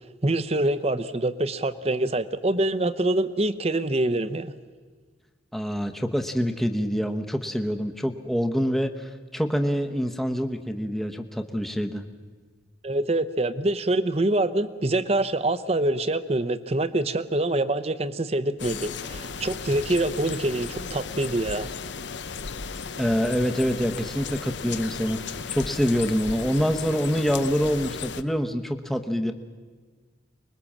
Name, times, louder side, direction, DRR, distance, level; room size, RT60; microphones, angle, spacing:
voice 1, 0.2-4.5 12.8-21.7, right 2 dB, 35° right, 12 dB, 0.8 m, -25 dB
voice 2, 5.5-12.0 23.0-29.3, equal, ahead, 5 dB, 0.9 m, -26 dB
sound 1, 18.6-28.2, left 5 dB, 80° left, 0.8 m, -35 dB
25.5 x 21.0 x 7.3 m, 1.5 s
head